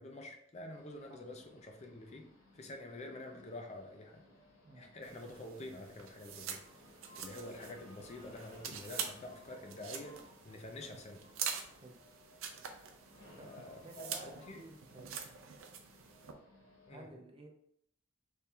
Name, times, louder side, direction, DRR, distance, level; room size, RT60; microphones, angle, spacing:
voice 1, 0.0-2.3 2.5-4.2 4.7-6.6 7.2-10.2 10.4-11.3 13.4-14.6 16.9-17.1, left 1 dB, 35° left, 3 dB, 0.4 m, -48 dB
sound 1, 0.7-16.9, left 1 dB, 80° left, 1.1 m, -60 dB
sound 2, 5.0-16.3, right 7 dB, 85° right, 0.5 m, -46 dB
voice 2, 13.8-15.1 16.9-17.5, right 2 dB, 25° right, 2 dB, 0.5 m, -52 dB
3.4 x 2.3 x 4.2 m, 0.72 s
head